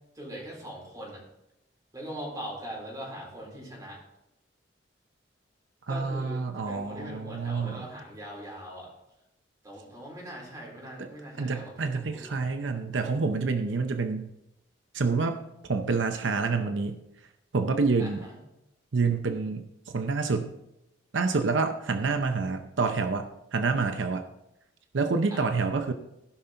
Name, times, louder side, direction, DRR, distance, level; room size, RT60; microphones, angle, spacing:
voice 1, 0.1-1.2 1.9-4.0 5.9-8.9 9.6-12.4 18.0-18.4 25.3-25.6, right 1 dB, 20° right, -4 dB, 4.2 m, -41 dB
voice 2, 5.9-7.8 11.0-11.1 11.4-14.3 14.9-15.4 15.7-17.0 17.5-18.3 18.9-19.7 19.9-20.5 21.1-24.2 24.9-25.9, right 4 dB, 80° right, 7 dB, 0.7 m, -27 dB
16.0 x 5.8 x 3.9 m, 0.87 s
head